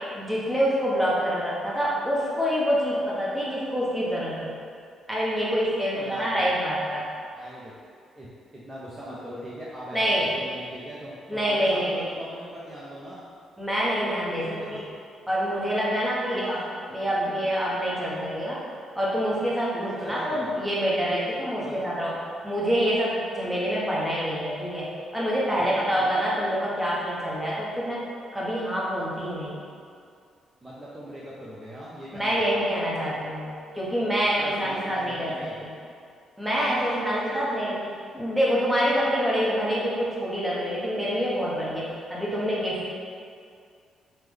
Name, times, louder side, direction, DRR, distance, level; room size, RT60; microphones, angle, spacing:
voice 1, 0.1-4.5 5.1-7.1 9.9-10.3 11.3-12.0 13.6-14.8 15.3-16.6 16.9-18.6 18.9-22.2 22.4-28.0 28.3-29.6 32.1-35.7 36.4-37.8 38.1-42.9, equal, 5° right, -7 dB, 0.8 m, -26 dB
voice 2, 5.9-6.4 7.3-7.7 8.2-8.3 8.5-10.0 10.4-13.2 14.2-14.8 16.3-16.6 19.7-20.5 21.1-21.8 25.5-26.2 30.6-32.6 34.4-35.6 36.5-37.5, equal, 25° right, -8 dB, 0.5 m, -40 dB
3.5 x 2.1 x 3.2 m, 2.2 s
cardioid pair, 90°, 0 cm